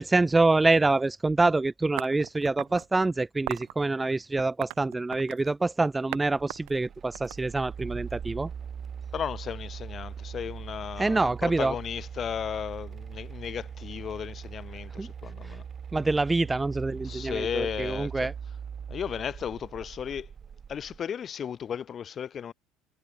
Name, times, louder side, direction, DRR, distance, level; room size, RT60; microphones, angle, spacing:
voice 1, 0.0-8.5 11.0-11.7 15.0-15.1 15.4-15.6 15.9-18.3, right 3 dB, 10° right, 1.3 m, -26 dB
sound 1, 2.0-2.9 3.5-3.7 4.4-5.5 6.1-6.2 6.5-7.9, right 25 dB, 70° right, 0.9 m, -37 dB
sound 2, 6.3-21.0, right 7 dB, 25° right, 1.1 m, -41 dB
voice 2, 9.1-15.6 17.0-18.3 18.9-20.3 20.7-22.5, left 8 dB, 30° left, 2.4 m, -35 dB
cardioid pair, 150°, 0 cm